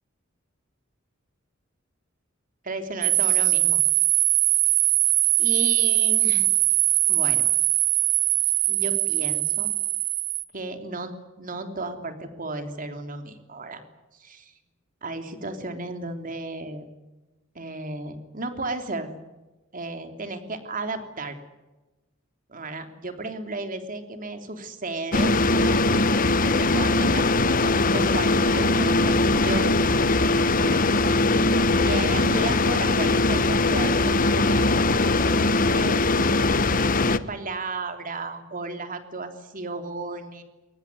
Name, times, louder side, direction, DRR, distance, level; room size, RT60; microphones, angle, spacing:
voice 1, 2.6-3.8 5.4-6.5 7.1-7.4 8.7-9.7 10.5-13.8 14.1-14.5 15.0-16.9 17.5-19.2 19.7-21.3 22.5-25.8 26.4-27.4 27.9-30.1 30.5-30.8 31.8-34.7 35.6-36.3 37.0-40.4, right 2 dB, 45° right, 7 dB, 3.2 m, -34 dB
sound 1, 3.0-10.4, right 16 dB, 80° right, 1.6 m, -21 dB
sound 2, 25.1-37.2, left 2 dB, 45° left, 1.0 m, -21 dB
23.5 x 19.0 x 9.7 m, 1.1 s
head